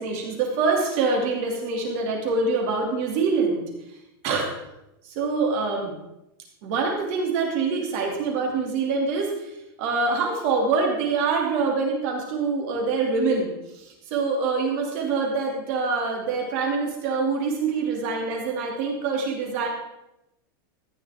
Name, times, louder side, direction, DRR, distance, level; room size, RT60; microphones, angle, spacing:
voice 1, 0.0-3.7 4.2-4.5 5.0-5.9 6.6-19.7, right 4 dB, 35° right, 0 dB, 2.7 m, -25 dB
14.0 x 10.0 x 3.7 m, 0.88 s
supercardioid pair, 180°, 12 cm